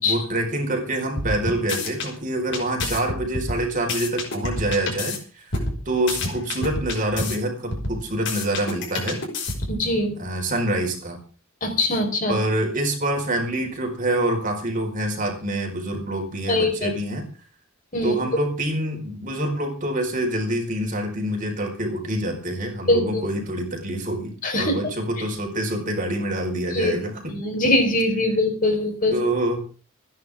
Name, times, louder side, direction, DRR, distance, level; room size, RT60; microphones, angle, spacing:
voice 1, 0.0-9.2 10.2-11.2 12.3-17.3 18.0-27.3 29.1-29.6, right 1 dB, 40° right, 2 dB, 4.8 m, -26 dB
sound 1, 1.2-2.1 2.5-5.2 5.5-7.4 7.7-9.9, left 2 dB, 55° left, 5.6 m, -29 dB
voice 2, 9.7-10.1 11.6-12.4 16.5-16.9 17.9-18.1 22.9-23.2 24.4-24.8 26.7-26.9 27.3-29.1, left 2 dB, 40° left, 3 dB, 4.4 m, -22 dB
28.5 x 10.5 x 3.6 m, 0.38 s
head